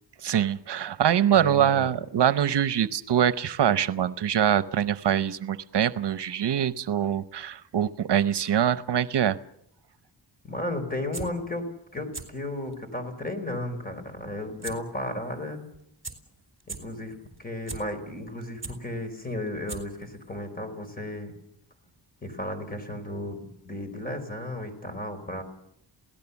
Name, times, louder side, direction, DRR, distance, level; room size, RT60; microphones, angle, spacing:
voice 1, 0.2-9.4, right 9 dB, 70° right, 14 dB, 0.8 m, -24 dB
voice 2, 1.3-1.9 10.4-15.6 16.7-21.3 22.2-25.4, left 1 dB, 20° left, 7 dB, 4.8 m, -34 dB
sound 1, 10.9-11.3 12.0-12.2 12.7-12.8 14.6-14.7 15.1-15.2 15.7-15.8 16.0-16.1 16.6-16.8 17.3-17.8 18.3-18.7 19.4-19.5 19.7-20.0 20.4-20.5, right 4 dB, 30° right, 4.1 m, -37 dB
27.0 x 17.5 x 7.1 m, 0.73 s
wide cardioid pair, 125°, 42 cm